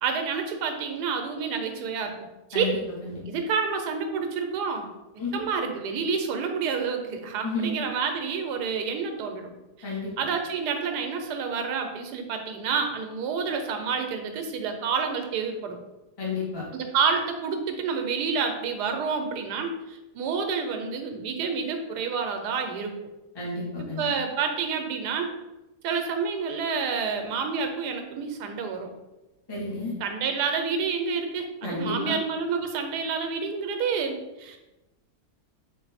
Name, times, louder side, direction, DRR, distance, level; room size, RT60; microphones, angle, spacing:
voice 1, 0.0-2.1 2.5-2.8 3.3-4.9 5.3-9.5 9.8-15.8 16.7-22.9 23.8-25.3 25.8-28.9 30.0-34.6, right 5 dB, 90° right, 5 dB, 1.2 m, -29 dB
voice 2, 2.5-3.2 5.2-5.4 7.4-7.7 9.8-10.1 16.2-16.6 23.3-24.1 29.5-29.9 31.6-32.1, left 3 dB, 20° left, -5 dB, 0.8 m, -31 dB
3.8 x 2.5 x 4.0 m, 1.0 s
omnidirectional pair, 1.7 m